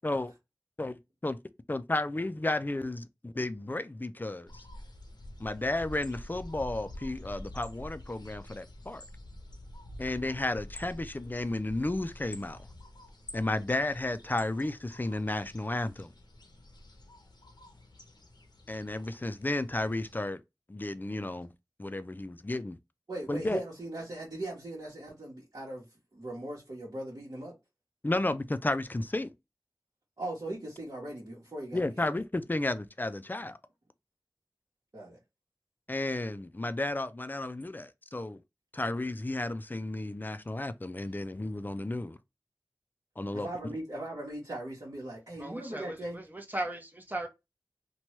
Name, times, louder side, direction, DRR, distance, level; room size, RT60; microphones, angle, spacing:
voice 1, 1.7-4.6 5.4-9.0 10.0-12.6 13.3-16.1 18.7-20.4 20.7-21.5 21.8-22.8 23.3-23.6 28.0-29.3 31.7-33.6 35.9-38.4 38.7-42.2 43.2-43.5, left 2 dB, 25° left, 0.4 m, -33 dB
sound 1, 4.5-20.2, left 1 dB, 85° left, 0.6 m, -48 dB
voice 2, 23.1-25.8 26.1-27.5 30.2-32.0 34.9-35.2 43.3-46.2, right 1 dB, 65° right, 1.0 m, -39 dB
voice 3, 45.4-47.3, right 1 dB, 25° right, 0.7 m, -37 dB
2.9 x 2.2 x 3.0 m
wide cardioid pair, 55°, 7 cm